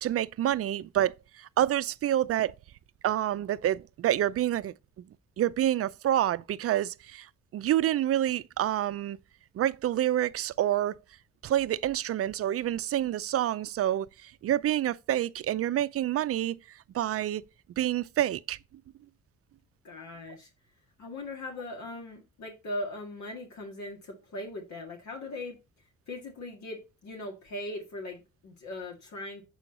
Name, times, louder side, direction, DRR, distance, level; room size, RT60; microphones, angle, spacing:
voice 1, 0.0-2.5 3.0-4.7 5.4-7.3 7.5-9.2 9.5-10.9 11.4-16.6 16.9-17.4 17.8-18.6, right 12 dB, 50° right, 0.5 m, -28 dB
voice 2, 19.8-20.5 21.0-25.6 26.1-29.4, left 1 dB, 65° left, 2.0 m, -39 dB
7.0 x 4.4 x 3.8 m
cardioid pair, 90°, 30 cm